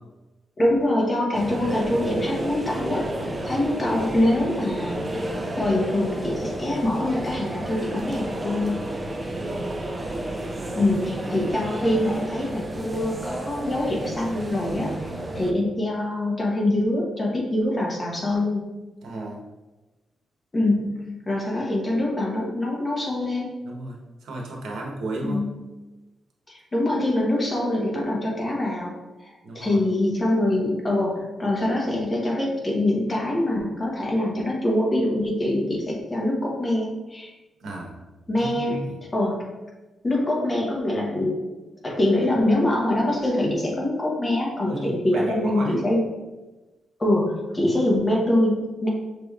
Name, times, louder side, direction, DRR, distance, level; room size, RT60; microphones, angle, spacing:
voice 1, 0.6-5.3 5.6-8.8 10.7-15.1 15.4-18.6 20.5-23.5 25.2-25.7 26.5-37.3 38.3-38.8 39.1-39.4 40.0-41.4 41.8-46.0 47.0-48.9, left 1 dB, 20° left, -2 dB, 1.0 m, -24 dB
sound 1, 1.3-15.5, right 1 dB, 20° right, 0.4 m, -31 dB
voice 2, 9.3-9.8 10.5-10.9 19.0-19.4 23.6-25.4 29.4-29.8 37.6-38.0 38.4-39.0 44.6-45.8, right 2 dB, 85° right, -1 dB, 1.0 m, -34 dB
5.8 x 3.2 x 2.4 m, 1.1 s
cardioid pair, 130°, 0 cm